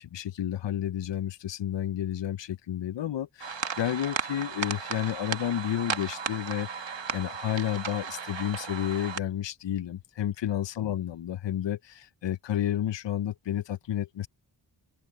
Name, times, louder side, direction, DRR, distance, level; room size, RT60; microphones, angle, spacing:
voice 1, 0.0-14.3, left 11 dB, 70° left, 0.6 m, -31 dB
sound 1, 3.4-9.2, right 6 dB, 75° right, 1.5 m, -35 dB
open air
cardioid pair, 50°, 45 cm